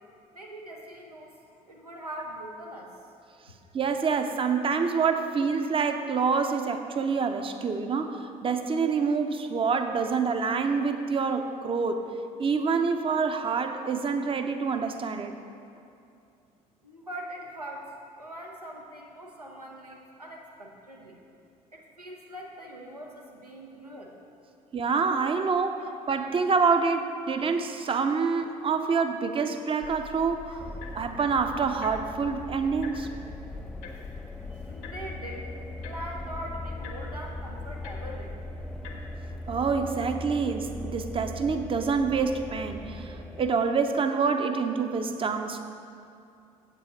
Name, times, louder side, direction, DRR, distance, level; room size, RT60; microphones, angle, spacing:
voice 1, 0.3-1.4 1.7-2.9 16.8-21.2 21.7-24.1 34.5-35.6 35.8-38.3, right 1 dB, 90° right, -1 dB, 0.8 m, -42 dB
voice 2, 3.7-12.0 12.4-15.3 24.7-33.1 39.5-45.6, right 5 dB, 30° right, 7 dB, 0.7 m, -27 dB
sound 1, 29.8-39.7, left 5 dB, 60° left, 1.0 m, -45 dB
sound 2, 30.6-43.5, left 1 dB, 5° left, 0.4 m, -40 dB
7.9 x 7.4 x 5.2 m, 2.5 s
figure-of-eight pair, 55°, 19 cm